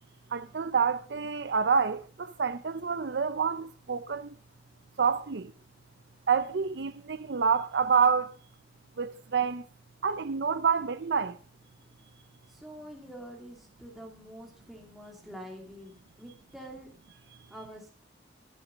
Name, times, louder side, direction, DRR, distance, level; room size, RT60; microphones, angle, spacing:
voice 1, 0.3-4.3 5.0-5.5 6.3-8.3 9.0-9.6 10.0-11.4, right 6 dB, 70° right, 0.6 m, -28 dB
voice 2, 12.5-15.9 16.2-16.9 17.5-17.9, equal, ahead, 2.6 m, -46 dB
14.0 x 10.5 x 5.1 m
head